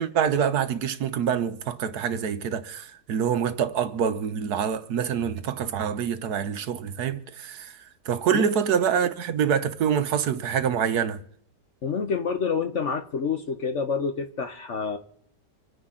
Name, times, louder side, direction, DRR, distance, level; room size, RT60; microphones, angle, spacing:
voice 1, 0.0-11.2, right 8 dB, 65° right, 1.3 m, -26 dB
voice 2, 11.8-15.0, left 5 dB, 50° left, 1.0 m, -28 dB
26.5 x 10.0 x 3.8 m
omnidirectional pair, 1.9 m